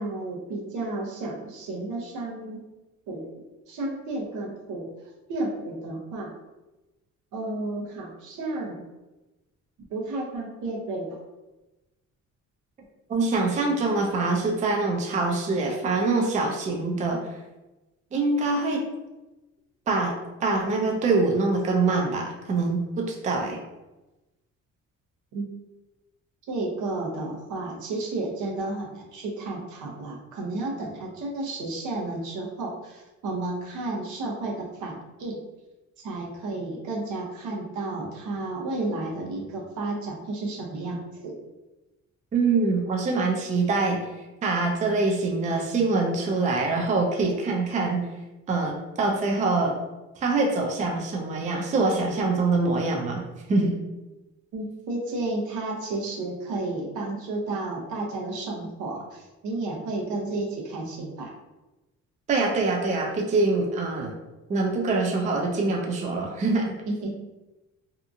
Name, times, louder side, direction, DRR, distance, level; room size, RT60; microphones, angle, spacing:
voice 1, 0.0-2.6 3.1-3.3 3.7-4.9 5.3-6.3 7.3-8.8 9.9-11.2 25.3-25.5 26.5-35.4 36.0-41.4 54.5-61.3 66.9-67.2, right 2 dB, 80° right, -2 dB, 0.8 m, -32 dB
voice 2, 13.1-17.2 18.1-18.8 19.9-20.1 20.4-23.6 42.3-44.1 44.4-48.1 48.5-49.7 50.2-53.2 53.5-53.7 62.3-64.1 64.5-66.7, right 3 dB, 25° right, 0 dB, 0.4 m, -24 dB
2.8 x 2.3 x 2.5 m, 1.1 s
cardioid pair, 135°, 30 cm